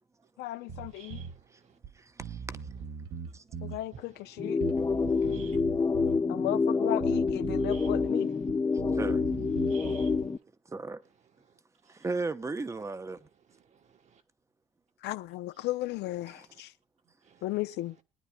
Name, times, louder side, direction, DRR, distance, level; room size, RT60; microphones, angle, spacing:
voice 1, 0.4-1.2 3.6-4.6 6.3-8.3 15.0-16.7 17.4-18.0, left 16 dB, 80° left, 0.6 m, -35 dB
Bass guitar, 0.7-1.4 1.8-1.9 2.2-3.8 4.6-6.2 7.0-8.1 8.4-10.3, right 6 dB, 70° right, 1.5 m, -40 dB
voice 2, 1.0-1.4 3.9-4.0 5.1-5.6 7.7-7.9 9.6-10.2 11.8-11.9 13.7-14.2 17.2-17.4, right 7 dB, 45° right, 1.3 m, -52 dB
voice 3, 2.0-2.6 3.3-3.4 4.7-5.1 6.1-6.3 8.9-9.3 10.7-11.0 11.9-13.3, right 3 dB, 15° right, 0.8 m, -36 dB
sound 1, 4.4-10.4, left 4 dB, 20° left, 0.6 m, -27 dB
23.0 x 9.6 x 2.3 m
cardioid pair, 110°, 17 cm